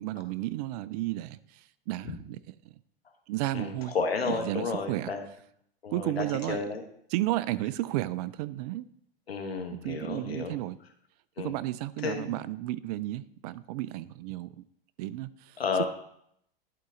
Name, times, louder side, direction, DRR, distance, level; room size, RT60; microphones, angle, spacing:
voice 1, 0.0-2.7 3.3-4.0 4.3-5.1 5.9-6.6 7.1-8.9 9.7-10.8 11.4-14.6 15.0-15.6, right 16 dB, 45° right, 17 dB, 0.4 m, -33 dB
voice 2, 3.5-5.2 5.8-6.8 9.3-10.5 11.4-11.5 12.0-12.2 15.6-15.9, left 5 dB, 90° left, 5 dB, 1.3 m, -32 dB
11.0 x 3.9 x 3.8 m, 0.70 s
hypercardioid pair, 105°, 30 cm